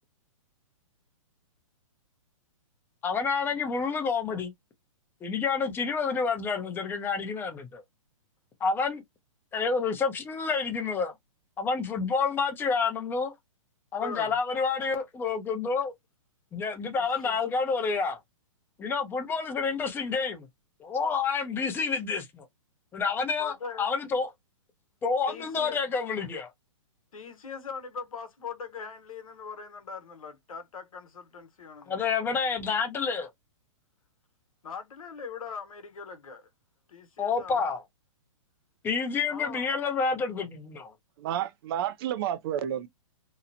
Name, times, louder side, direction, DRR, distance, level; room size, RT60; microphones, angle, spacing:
voice 1, 3.0-4.5 5.2-7.8 8.6-9.0 9.5-11.1 11.6-13.3 13.9-15.9 16.5-18.2 18.8-20.5 20.8-22.5 22.9-24.3 25.0-26.5 31.9-33.3 37.2-37.8 38.8-40.9, left 5 dB, 10° left, 0.5 m, -29 dB
voice 2, 14.0-14.3 15.6-15.7 17.0-17.4 23.4-23.9 25.3-25.8 27.1-32.0 34.6-36.5 36.9-37.7 39.3-39.7, left 5 dB, 90° left, 0.9 m, -41 dB
voice 3, 41.2-42.9, right 10 dB, 45° right, 0.4 m, -30 dB
2.8 x 2.0 x 2.5 m
hypercardioid pair, 140°, 17 cm